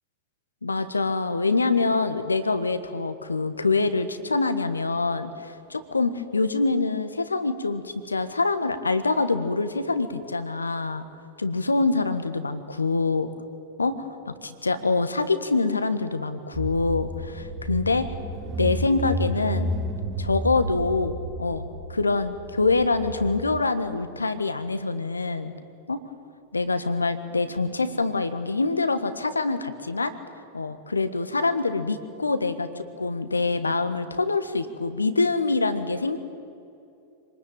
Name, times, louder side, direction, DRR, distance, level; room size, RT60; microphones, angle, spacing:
voice 1, 0.6-11.0 11.4-13.3 13.8-13.9 14.4-18.1 18.6-19.7 20.2-21.6 21.9-25.5 25.9-26.0 26.5-30.1 30.5-36.2, left 3 dB, 80° left, 11 dB, 1.5 m, -25 dB
Car / Engine, 16.5-23.6, right 1 dB, 25° right, 2.9 m, -32 dB
26.5 x 20.0 x 9.1 m, 2.6 s
figure-of-eight pair, 90°, 0 cm